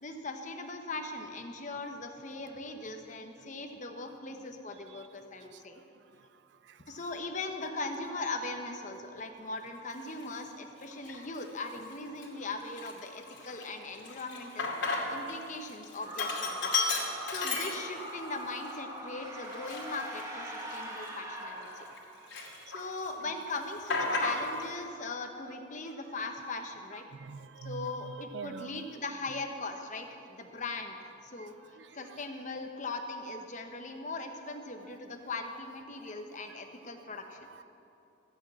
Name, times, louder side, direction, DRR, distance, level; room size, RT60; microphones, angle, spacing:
voice 1, 0.0-5.8 6.9-16.8 17.2-21.8 22.7-27.0 27.6-31.0 31.2-31.5 31.9-37.5, left 3 dB, 40° left, 5 dB, 1.0 m, -39 dB
Sink (filling or washing), 10.1-10.2 10.9-11.4 11.8-11.9 12.2-15.4 15.7-18.2 18.7-18.8 19.4-22.0 22.3-23.1 23.3-24.7, left 3 dB, 75° left, 2.4 m, -34 dB
sound 1, 16.0-22.4, right 1 dB, 15° right, 1.4 m, -42 dB
voice 2, 27.2-28.9 31.8-32.2 37.5-37.6, right 5 dB, 60° right, 14 dB, 0.4 m, -44 dB
14.5 x 6.3 x 8.3 m, 2.8 s
head